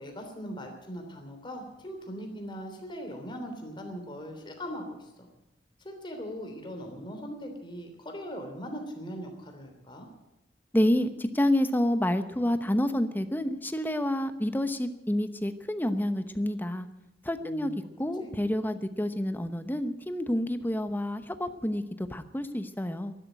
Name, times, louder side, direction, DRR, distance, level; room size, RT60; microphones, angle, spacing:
voice 1, 0.0-5.3 5.8-10.1 17.4-17.7 18.2-18.3, equal, 30° left, 3 dB, 3.2 m, -40 dB
voice 2, 10.7-16.9 17.2-17.7 18.0-23.1, left 1 dB, 10° left, 10 dB, 0.9 m, -28 dB
12.0 x 12.0 x 9.2 m, 0.92 s
head